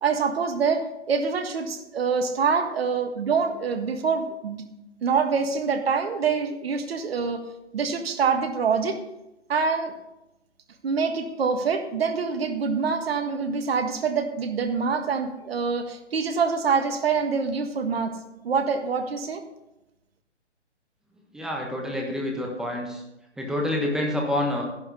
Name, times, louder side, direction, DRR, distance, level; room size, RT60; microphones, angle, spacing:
voice 1, 0.0-4.7 5.0-7.4 7.7-9.0 9.5-9.9 10.8-18.1 18.4-19.4, right 5 dB, 55° right, 7 dB, 1.6 m, -25 dB
voice 2, 21.3-23.0 23.4-24.6, left 1 dB, ahead, 0 dB, 1.2 m, -27 dB
11.0 x 10.5 x 4.0 m, 0.92 s
hypercardioid pair, 145°, 35 cm